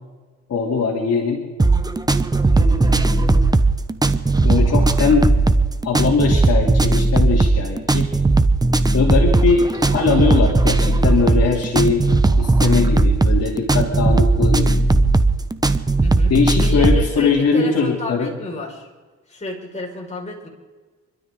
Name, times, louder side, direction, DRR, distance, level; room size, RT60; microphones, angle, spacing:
voice 1, 0.5-1.4 2.5-3.3 4.4-5.3 5.8-8.1 8.9-12.1 12.4-14.8 16.3-18.3, left 5 dB, 55° left, -1 dB, 2.9 m, -20 dB
sound 1, 1.6-17.1, right 2 dB, 15° right, 1.0 m, -17 dB
voice 2, 16.0-18.9 19.3-20.5, left 3 dB, 25° left, -2 dB, 5.1 m, -31 dB
28.5 x 12.5 x 3.8 m, 1.3 s
cardioid pair, 90°, 30 cm